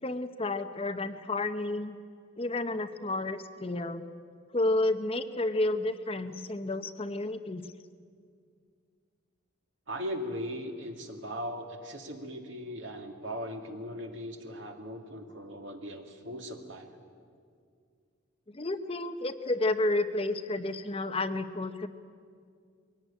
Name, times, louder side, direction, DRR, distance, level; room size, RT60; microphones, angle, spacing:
voice 1, 0.0-2.0 2.4-4.1 4.5-7.7 18.5-21.9, left 2 dB, 30° left, 9 dB, 0.7 m, -31 dB
voice 2, 9.9-16.9, equal, 65° right, 4 dB, 2.3 m, -39 dB
21.5 x 17.5 x 10.0 m, 2.2 s
head